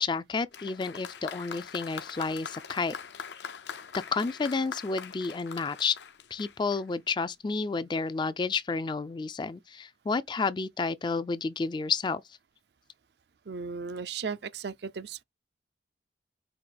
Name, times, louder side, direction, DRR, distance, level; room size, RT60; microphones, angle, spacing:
voice 1, 0.0-3.0 3.9-6.0 6.3-12.2, left 4 dB, 25° left, 0.3 m, -30 dB
Applause, 0.5-7.0 7.9-8.0, left 6 dB, 70° left, 0.6 m, -42 dB
voice 2, 13.5-15.2, right 5 dB, 65° right, 0.5 m, -36 dB
4.9 x 2.5 x 3.8 m
head